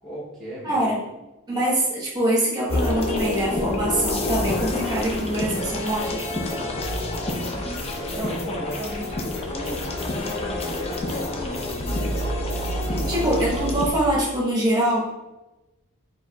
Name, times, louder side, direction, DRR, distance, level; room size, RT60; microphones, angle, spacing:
voice 1, 0.0-0.8 7.2-7.7 8.2-9.2 9.5-12.2 12.8-13.3, equal, ahead, -11 dB, 0.9 m, -36 dB
voice 2, 0.6-1.0 1.5-6.5 12.9-15.0, right 1 dB, 20° right, -5 dB, 1.1 m, -24 dB
sound 1, 2.7-13.9, left 1 dB, 25° left, 0.5 m, -27 dB
4.5 x 3.8 x 2.3 m, 1.0 s
head